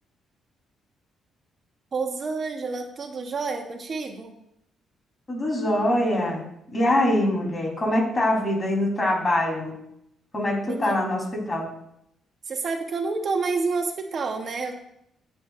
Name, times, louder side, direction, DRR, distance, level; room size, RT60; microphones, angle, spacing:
voice 1, 1.9-4.3 10.6-11.0 12.5-14.7, right 4 dB, 45° right, 4 dB, 1.1 m, -29 dB
voice 2, 5.3-6.4 6.7-9.8 10.3-11.7, left 1 dB, 30° left, -1 dB, 3.9 m, -23 dB
14.5 x 8.0 x 2.6 m, 0.76 s
cardioid pair, 90°, 0 cm